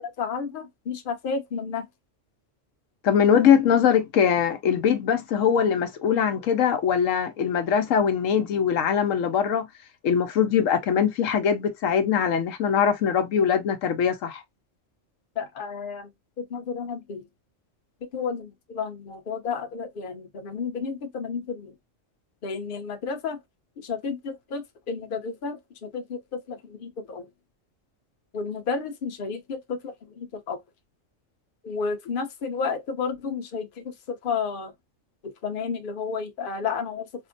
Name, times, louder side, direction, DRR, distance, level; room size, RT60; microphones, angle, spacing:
voice 1, 0.2-1.9 15.4-16.1 16.4-17.3 18.0-21.7 22.4-23.4 23.8-27.3 28.3-30.6 31.6-34.7 35.2-37.1, left 5 dB, 45° left, 0.8 m, -32 dB
voice 2, 3.0-9.7 10.0-14.4, left 7 dB, 80° left, 1.0 m, -22 dB
4.3 x 2.1 x 2.5 m
omnidirectional pair, 1.4 m